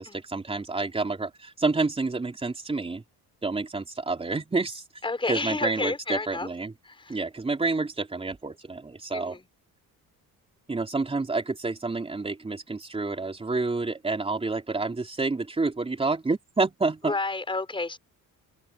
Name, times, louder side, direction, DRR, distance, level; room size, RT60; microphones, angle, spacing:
voice 1, 0.0-3.0 3.4-4.8 5.3-6.7 7.1-9.4 10.7-17.1, right 3 dB, 15° right, 3.9 m, -29 dB
voice 2, 5.0-6.5 6.8-7.2 9.1-9.4 17.0-18.0, left 3 dB, 15° left, 4.5 m, -30 dB
cardioid pair, 150°, 35 cm